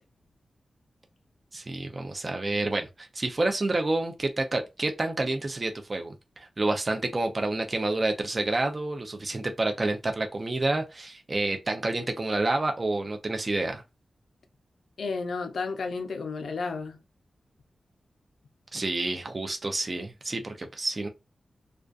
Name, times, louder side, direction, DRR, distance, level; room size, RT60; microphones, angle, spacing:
voice 1, 1.5-13.8 18.7-21.1, right 2 dB, 30° right, 0.4 m, -29 dB
voice 2, 15.0-17.0, left 4 dB, 80° left, 0.4 m, -32 dB
2.4 x 2.3 x 2.4 m
wide cardioid pair, 130°, 0 cm